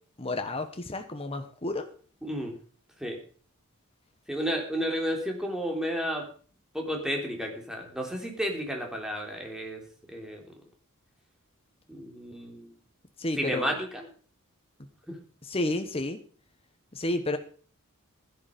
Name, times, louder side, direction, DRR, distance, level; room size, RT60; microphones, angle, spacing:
voice 1, 0.2-1.9 13.2-13.6 15.4-16.2 16.9-17.4, left 2 dB, 25° left, 7 dB, 1.2 m, -31 dB
voice 2, 2.2-2.5 3.0-3.2 4.3-6.3 6.7-9.8 10.1-10.4 11.9-12.7 13.4-14.0 15.1-15.2 17.0-17.2, equal, 5° right, 1 dB, 3.4 m, -32 dB
15.5 x 10.5 x 5.3 m, 0.43 s
head